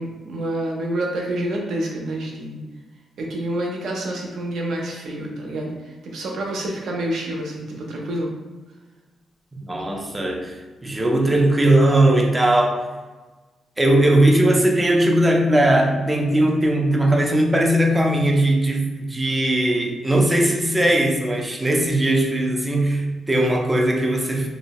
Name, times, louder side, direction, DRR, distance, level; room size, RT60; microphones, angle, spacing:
voice 1, 0.0-2.6 3.2-8.3, right 1 dB, 70° right, -1 dB, 0.6 m, -28 dB
voice 2, 9.7-12.9 13.8-24.5, right 1 dB, 15° right, 1 dB, 0.3 m, -19 dB
2.6 x 2.0 x 2.8 m, 1.2 s
wide cardioid pair, 150°, 0 cm